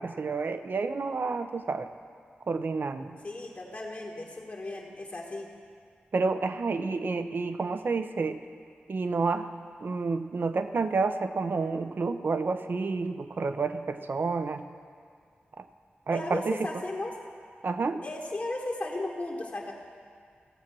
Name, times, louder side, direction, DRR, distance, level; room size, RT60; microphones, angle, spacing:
voice 1, 0.0-1.9 2.5-3.2 6.1-8.4 8.9-9.5 9.8-14.6 15.6-15.7 16.1-16.6 17.6-18.0, right 4 dB, 60° right, 9 dB, 0.7 m, -29 dB
voice 2, 3.2-5.5 16.1-17.1 18.0-19.7, left 2 dB, 50° left, -3 dB, 1.6 m, -35 dB
16.0 x 7.3 x 6.1 m, 2.2 s
cardioid pair, 65°, 4 cm